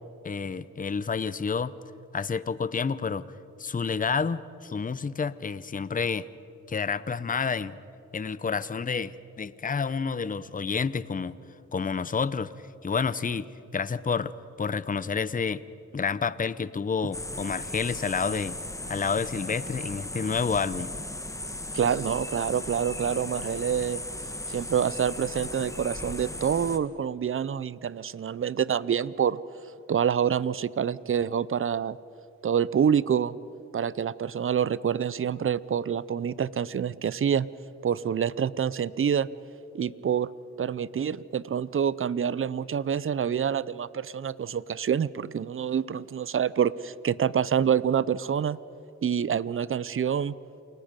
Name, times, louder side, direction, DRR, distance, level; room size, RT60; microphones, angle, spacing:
voice 1, 0.2-1.7 2.1-3.3 3.6-6.3 6.7-7.8 8.1-11.4 11.7-13.5 13.7-15.6 15.9-18.6 18.9-20.9, left 5 dB, 25° left, 16 dB, 0.7 m, -29 dB
sound 1, 17.1-26.8, left 1 dB, 10° left, 1.4 m, -37 dB
voice 2, 21.7-24.0 24.5-29.4 29.9-32.0 32.4-33.3 33.7-37.5 37.8-39.3 39.7-40.3 40.6-48.6 49.0-50.3, right 8 dB, 45° right, 19 dB, 0.6 m, -27 dB
29.0 x 19.0 x 5.3 m, 2.8 s
cardioid pair, 60°, 31 cm